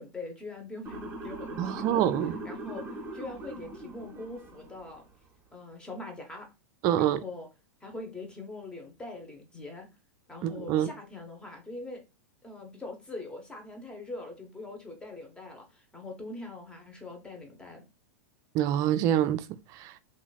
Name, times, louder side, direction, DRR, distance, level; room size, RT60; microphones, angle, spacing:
voice 1, 0.0-2.1 2.4-5.1 5.5-6.5 7.0-7.5 7.8-9.9 10.3-12.0 12.4-17.9, left 2 dB, 10° left, 1.1 m, -42 dB
Motor vehicle (road) / Siren, 0.8-5.0, right 2 dB, 20° right, 1.0 m, -41 dB
voice 2, 1.6-2.4 6.8-7.2 10.4-10.9 18.5-19.4 19.8-19.9, right 11 dB, 40° right, 0.4 m, -26 dB
2.8 x 2.6 x 4.0 m
hypercardioid pair, 130°, 10 cm